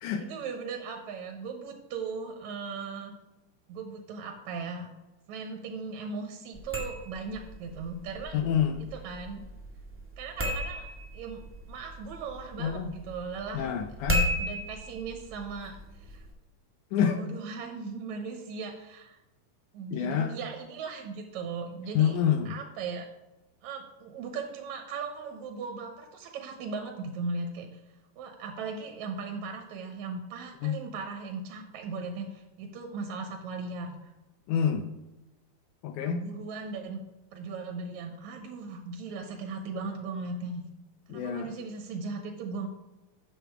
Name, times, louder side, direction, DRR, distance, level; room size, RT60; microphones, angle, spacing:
voice 1, 0.1-3.1 3.7-4.9 5.3-8.4 8.9-9.4 10.2-10.9 11.1-11.4 11.7-13.7 14.4-16.3 17.0-19.2 19.7-22.1 22.5-23.1 23.6-27.8 28.2-34.1 36.0-37.0 37.3-40.6 41.1-42.7, right 4 dB, 70° right, 3 dB, 2.2 m, -38 dB
sound 1, 6.5-16.3, equal, 10° right, 0.5 m, -36 dB
voice 2, 8.3-8.8 12.6-12.9 13.5-14.3 16.9-17.2 19.9-20.3 22.0-22.5 30.6-30.8 34.5-34.9 35.8-36.2 41.1-41.5, left 8 dB, 80° left, 6 dB, 2.1 m, -27 dB
8.4 x 7.0 x 4.6 m, 1.0 s
omnidirectional pair, 3.7 m